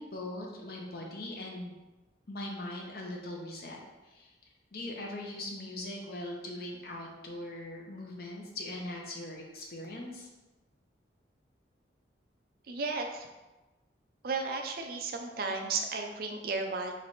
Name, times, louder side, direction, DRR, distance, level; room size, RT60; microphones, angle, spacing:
voice 1, 0.0-1.7 2.3-3.8 4.1-4.3 4.7-10.3, left 1 dB, 55° left, 0 dB, 0.8 m, -40 dB
voice 2, 12.7-13.3 14.2-16.9, right 3 dB, 55° right, 3 dB, 0.5 m, -34 dB
3.2 x 3.2 x 4.0 m, 1.1 s
head